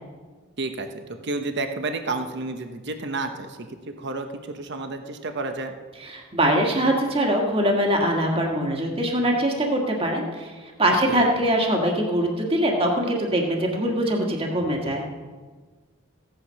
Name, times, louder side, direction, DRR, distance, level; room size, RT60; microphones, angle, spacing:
voice 1, 0.6-5.7 11.1-11.3, right 3 dB, 55° right, 6 dB, 1.0 m, -31 dB
voice 2, 6.0-10.5 10.8-15.0, right 1 dB, 30° right, 0 dB, 1.8 m, -22 dB
15.5 x 9.1 x 5.7 m, 1.4 s
head